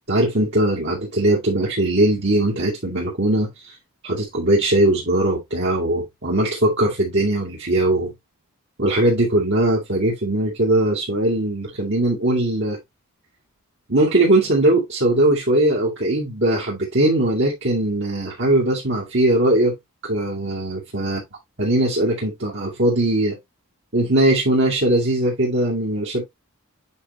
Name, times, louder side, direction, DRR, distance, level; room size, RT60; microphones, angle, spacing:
voice 1, 0.1-3.8 4.0-8.1 8.8-12.8 13.9-19.7 20.0-21.2 21.6-23.4 23.9-26.2, right 1 dB, 55° right, 2.4 m, -20 dB
8.4 x 4.8 x 3.1 m
head